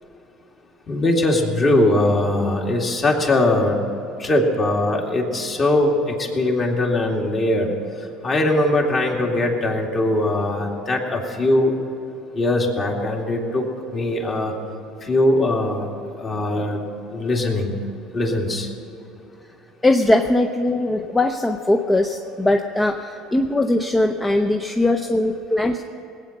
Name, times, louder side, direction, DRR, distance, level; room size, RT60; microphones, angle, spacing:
voice 1, 0.9-3.8 4.2-7.7 8.2-11.7 12.3-13.6 13.9-14.5 15.0-15.9 16.2-16.8 17.1-17.8 18.1-18.7, left 1 dB, 35° left, 0 dB, 2.4 m, -20 dB
voice 2, 19.8-25.9, left 1 dB, 15° left, 4 dB, 0.7 m, -20 dB
19.5 x 8.7 x 6.6 m, 2.9 s
supercardioid pair, 110°, 0 cm